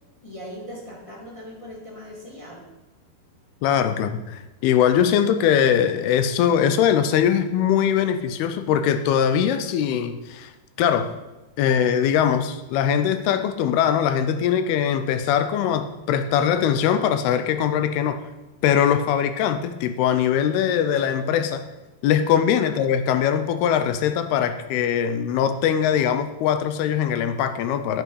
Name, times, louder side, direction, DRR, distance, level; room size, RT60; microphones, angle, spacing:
voice 1, 0.2-2.6 22.6-22.7, equal, 15° left, -5 dB, 1.1 m, -39 dB
voice 2, 3.6-10.5 10.8-11.1 11.6-18.2 18.6-21.6 22.0-28.0, left 8 dB, 80° left, 9 dB, 2.5 m, -21 dB
9.8 x 8.2 x 5.5 m, 1.0 s
omnidirectional pair, 4.7 m